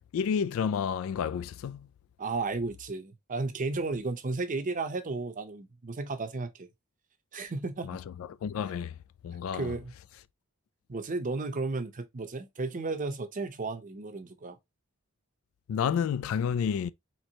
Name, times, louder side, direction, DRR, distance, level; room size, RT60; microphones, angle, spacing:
voice 1, 0.1-1.9 7.8-9.0 9.2-9.7 15.7-16.9, left 7 dB, 70° left, 0.3 m, -30 dB
voice 2, 2.2-6.7 7.3-8.0 9.5-9.9 10.9-14.6, right 3 dB, 40° right, 0.7 m, -33 dB
4.5 x 3.1 x 2.8 m
head